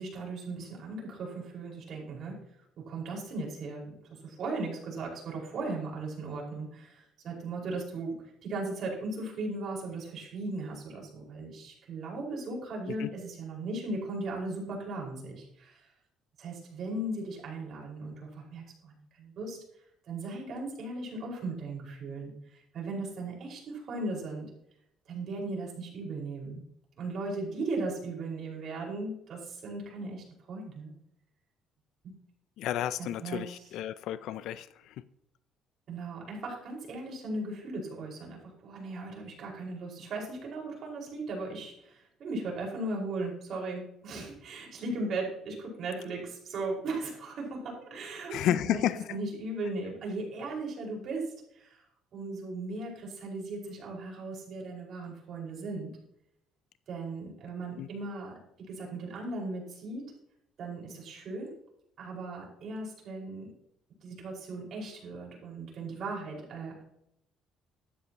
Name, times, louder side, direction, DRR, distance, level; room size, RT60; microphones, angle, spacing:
voice 1, 0.0-2.4 2.8-3.9 4.2-15.9 16.4-19.6 20.1-24.5 25.1-26.6 27.0-30.9 32.0-32.1 33.0-33.6 35.9-48.8 49.1-51.8 52.1-55.9 56.9-60.1 60.6-61.5 62.0-63.5 64.0-66.8, right 2 dB, 55° right, 5.1 m, -37 dB
voice 2, 32.6-35.0 48.3-49.2 57.8-57.9, left 12 dB, 75° left, 0.4 m, -32 dB
13.0 x 11.0 x 3.0 m
cardioid pair, 100°, 0 cm